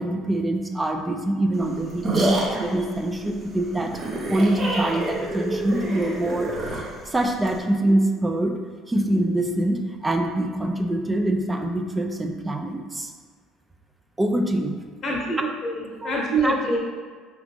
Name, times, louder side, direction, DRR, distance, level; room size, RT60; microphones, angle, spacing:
voice 1, 0.0-4.0 4.3-6.5 7.1-8.6 8.9-13.1 14.2-14.8 16.0-16.6, right 1 dB, 15° right, 4 dB, 0.5 m, -24 dB
sound 1, 1.5-7.6, right 1 dB, 35° right, 1.0 m, -28 dB
voice 2, 15.0-16.8, right 2 dB, 40° left, -3 dB, 1.0 m, -25 dB
4.9 x 3.0 x 3.4 m, 1.5 s
hypercardioid pair, 65°, 0 cm